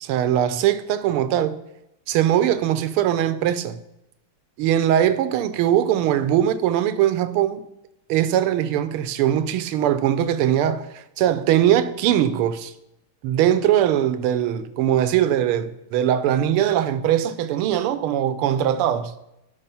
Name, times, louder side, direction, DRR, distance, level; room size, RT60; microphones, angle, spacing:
voice 1, 0.0-1.6 2.1-3.8 4.6-7.6 8.1-12.7 13.2-19.1, right 11 dB, 90° right, 1.6 m, -21 dB
12.0 x 5.2 x 5.5 m
omnidirectional pair, 2.3 m